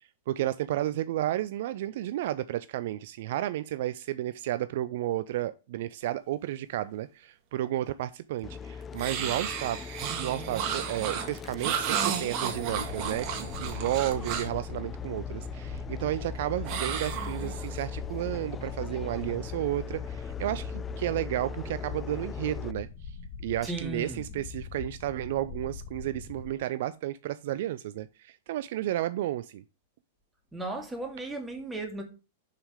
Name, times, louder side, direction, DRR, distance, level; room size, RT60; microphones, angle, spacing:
voice 1, 0.3-9.8 10.2-23.2 23.4-29.6, right 13 dB, 55° right, 0.4 m, -32 dB
sound 1, 8.4-22.7, left 6 dB, 20° left, 0.4 m, -39 dB
sound 2, 9.0-14.6 16.7-17.8, right 8 dB, 40° right, 1.6 m, -33 dB
sound 3, 12.5-26.5, left 5 dB, 55° left, 1.6 m, -43 dB
voice 2, 23.6-24.5 30.5-32.0, right 2 dB, 10° right, 2.2 m, -36 dB
6.9 x 5.7 x 5.0 m
figure-of-eight pair, 100°, 0 cm